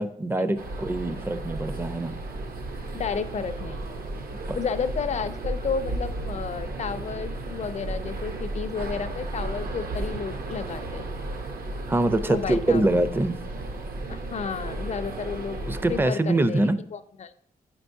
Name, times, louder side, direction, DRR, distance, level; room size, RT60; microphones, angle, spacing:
voice 1, 0.0-2.2 4.5-4.6 11.9-13.4 15.7-16.8, right 2 dB, 15° right, 11 dB, 0.4 m, -24 dB
sound 1, 0.6-16.1, right 2 dB, 70° right, 0.7 m, -34 dB
voice 2, 2.9-3.9 4.5-11.2 12.3-12.9 14.1-17.3, left 6 dB, 45° left, 11 dB, 0.4 m, -32 dB
9.1 x 4.5 x 2.6 m, 0.71 s
cardioid pair, 90°, 16 cm